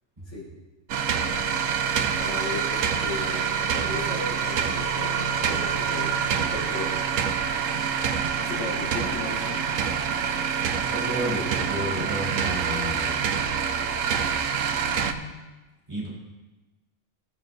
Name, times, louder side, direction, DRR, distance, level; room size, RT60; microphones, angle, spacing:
sound 1, 0.9-15.1, right 7 dB, 85° right, 1.0 m, -26 dB
voice 1, 2.1-7.2 7.7-8.0 8.4-9.6 14.7-15.4, left 2 dB, 65° left, -7 dB, 3.6 m, -36 dB
voice 2, 10.8-13.1 15.9-16.1, equal, 25° right, -6 dB, 3.7 m, -31 dB
17.0 x 7.7 x 2.6 m, 1.1 s
omnidirectional pair, 1.3 m